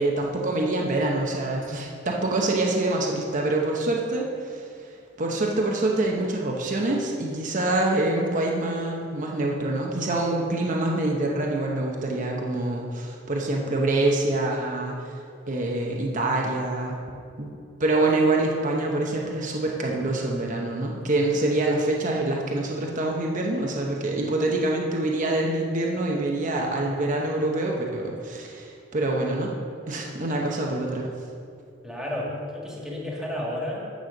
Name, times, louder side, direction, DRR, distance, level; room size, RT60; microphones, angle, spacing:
voice 1, 0.0-4.7 5.2-15.2 15.5-17.0 17.4-29.5 29.9-31.1, right 2 dB, 45° right, -1 dB, 0.9 m, -25 dB
voice 2, 31.8-33.9, left 1 dB, 5° right, -3 dB, 1.8 m, -32 dB
9.3 x 5.6 x 6.5 m, 2.4 s
head